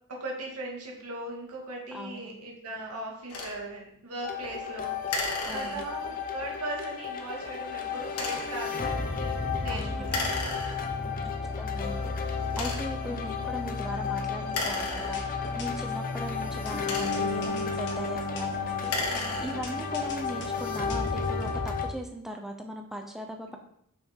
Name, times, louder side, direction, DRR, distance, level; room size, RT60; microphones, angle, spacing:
voice 1, 0.1-9.3 9.6-10.5 11.0-11.4 13.0-13.2 19.1-19.3 19.6-19.9, right 2 dB, 90° right, -2 dB, 2.3 m, -39 dB
voice 2, 1.9-2.3 5.5-5.8 9.7-10.1 11.2-23.6, equal, ahead, 3 dB, 0.7 m, -39 dB
sound 1, 3.3-3.6 5.1-6.1 8.1-8.6 10.1-11.1 11.8-11.9 12.5-13.1 14.4-15.6 16.6-17.5 18.7-19.8, left 3 dB, 85° left, 1.4 m, -34 dB
sound 2, 4.2-21.9, left 5 dB, 40° left, 0.9 m, -32 dB
sound 3, 14.1-14.5 15.0-16.0 16.5-21.5, left 4 dB, 55° left, 1.7 m, -44 dB
5.9 x 5.9 x 4.5 m, 0.70 s
head